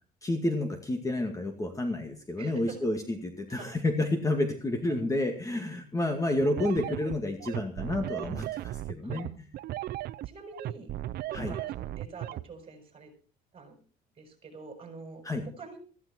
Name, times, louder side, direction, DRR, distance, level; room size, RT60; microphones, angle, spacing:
voice 1, 0.2-9.3 11.3-11.5 15.2-15.4, left 1 dB, 20° left, 5 dB, 2.2 m, -30 dB
voice 2, 2.4-2.8 3.6-3.7 9.0-9.4 10.2-10.9 11.3-13.1 13.5-13.8 14.2-15.8, right 4 dB, 35° right, 6 dB, 6.4 m, -46 dB
sound 1, 6.4-12.4, right 14 dB, 65° right, 0.6 m, -36 dB
15.5 x 15.0 x 4.4 m, 0.39 s
cardioid pair, 110°, 17 cm